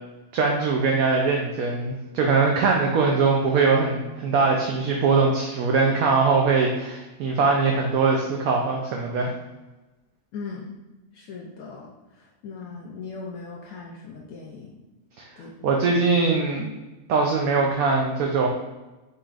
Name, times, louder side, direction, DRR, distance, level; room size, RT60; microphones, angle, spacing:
voice 1, 0.3-9.3 15.2-15.3 15.6-16.7 17.1-18.5, right 4 dB, 70° right, 0 dB, 1.0 m, -22 dB
voice 2, 10.3-10.7 11.1-14.7 15.4-15.8, left 4 dB, 75° left, -2 dB, 1.0 m, -39 dB
4.8 x 4.1 x 2.4 m, 1.1 s
omnidirectional pair, 1.7 m